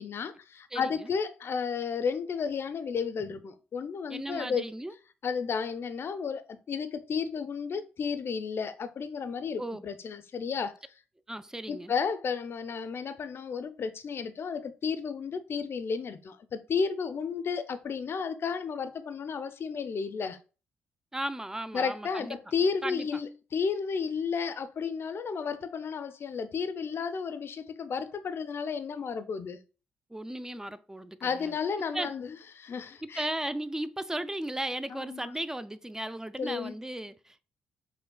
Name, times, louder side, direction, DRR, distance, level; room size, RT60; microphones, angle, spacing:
voice 1, 0.0-4.7 5.2-10.7 11.7-20.4 21.7-29.6 31.2-33.3 34.9-35.3 36.4-36.7, left 6 dB, 50° left, 0.5 m, -32 dB
voice 2, 0.7-1.1 4.1-4.9 9.6-9.8 11.3-11.9 21.1-22.4 22.8-23.1 30.1-31.6 31.9-32.1 33.0-37.5, right 1 dB, 10° right, 0.3 m, -36 dB
5.2 x 2.1 x 2.2 m
hypercardioid pair, 45°, 5 cm